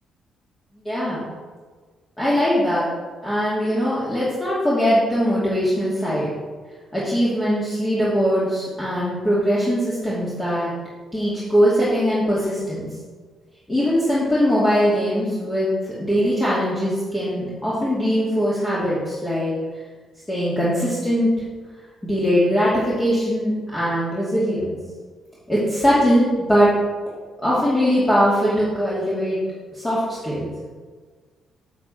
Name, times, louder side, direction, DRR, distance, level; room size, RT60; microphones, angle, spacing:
voice 1, 0.8-1.2 2.2-2.9 3.2-6.3 6.9-10.7 11.1-12.9 13.7-15.7 16.0-19.5 20.3-21.4 22.0-24.7 25.5-26.7 27.4-29.4 29.7-30.5, equal, 20° left, -9 dB, 2.6 m, -21 dB
8.3 x 7.3 x 4.4 m, 1.5 s
cardioid pair, 90°, 0 cm